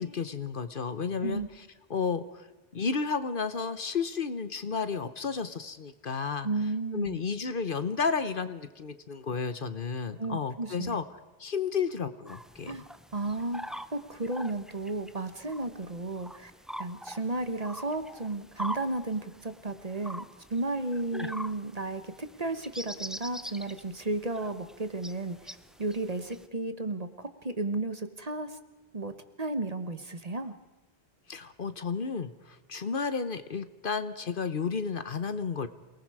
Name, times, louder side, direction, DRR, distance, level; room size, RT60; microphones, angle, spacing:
voice 1, 0.0-1.4 1.9-2.5 2.7-6.5 6.9-11.0 11.4-12.7 21.1-21.3 31.3-35.7, left 5 dB, 55° left, 12 dB, 1.1 m, -32 dB
voice 2, 6.4-7.2 10.2-11.0 12.7-12.9 13.1-16.5 16.8-20.2 20.5-28.6 28.9-30.5, right 2 dB, 35° right, 10 dB, 1.2 m, -33 dB
sound 1, 12.3-26.5, equal, ahead, 0.4 m, -44 dB
28.0 x 19.5 x 4.8 m, 1.1 s
omnidirectional pair, 1.1 m